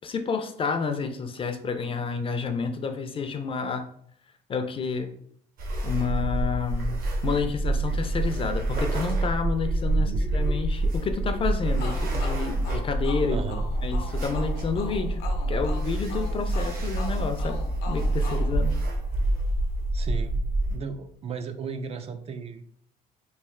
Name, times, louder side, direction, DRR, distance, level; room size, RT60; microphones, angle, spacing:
voice 1, 0.0-3.9 4.5-5.1 5.8-13.4 13.8-15.2 15.5-17.6 17.9-18.7, left 5 dB, 30° left, 7 dB, 0.4 m, -30 dB
sound 1, 5.6-20.8, right 2 dB, 60° right, 1.0 m, -27 dB
voice 2, 9.8-10.2 13.3-13.7 19.9-20.4 20.7-22.8, right 6 dB, 35° right, 8 dB, 0.3 m, -36 dB
sound 2, 11.8-19.4, left 5 dB, 75° left, 0.6 m, -41 dB
3.2 x 2.5 x 3.6 m, 0.66 s
cardioid pair, 110°, 17 cm